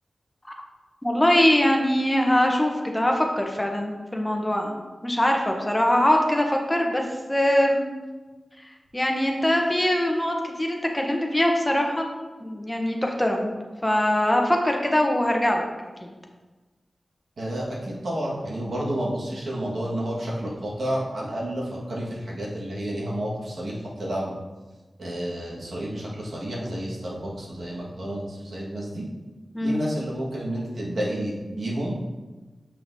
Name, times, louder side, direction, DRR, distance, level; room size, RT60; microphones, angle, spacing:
voice 1, 1.0-4.8 5.0-7.9 8.9-12.0 12.4-13.5 13.8-15.6 16.0-16.1 29.5-29.8, left 1 dB, 15° left, 2 dB, 0.9 m, -22 dB
voice 2, 17.4-24.3 25.0-29.0 29.6-32.0, right 1 dB, 80° right, -5 dB, 1.7 m, -30 dB
7.4 x 5.6 x 2.7 m, 1.2 s
wide cardioid pair, 85°, 0 cm